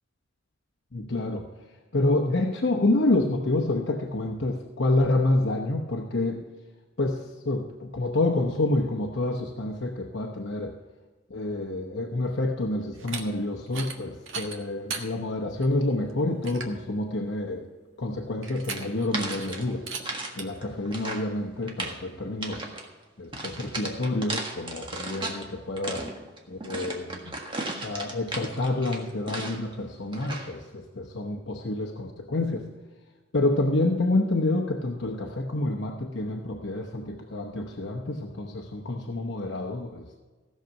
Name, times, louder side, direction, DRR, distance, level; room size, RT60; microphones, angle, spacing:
voice 1, 0.9-1.5 1.9-6.5 7.0-10.8 11.3-17.7 18.0-19.8 20.4-22.7 23.2-26.1 26.5-27.3 27.8-32.7 33.3-40.2, left 2 dB, 60° left, 1 dB, 0.9 m, -28 dB
sound 1, 12.9-13.2 13.7-14.0 14.3-15.1 15.6-15.7 16.1-16.2 16.4-16.8 18.4-19.1 19.3-19.6 19.9-20.0 20.4-20.5, right 5 dB, 75° right, 1.6 m, -36 dB
sound 2, 18.7-20.3 20.6-21.3 21.6-22.0 22.4-22.9 23.3-25.4 25.8-29.7 30.1-30.6, right 2 dB, 25° right, 1.6 m, -35 dB
16.5 x 6.6 x 6.0 m, 1.3 s
head